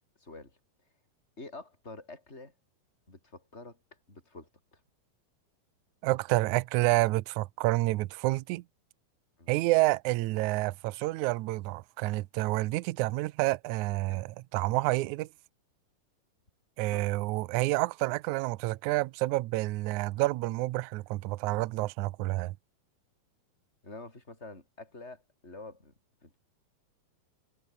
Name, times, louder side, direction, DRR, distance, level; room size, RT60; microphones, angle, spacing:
voice 1, 0.2-0.6 1.4-2.5 3.1-3.8 4.1-4.8 9.4-9.5 14.1-14.2 16.9-17.1 23.8-25.9 26.2-26.4, left 3 dB, 15° left, 7.0 m, -47 dB
voice 2, 6.0-8.6 9.5-15.3 16.8-22.5, right 19 dB, 85° right, 1.7 m, -29 dB
omnidirectional pair, 4.3 m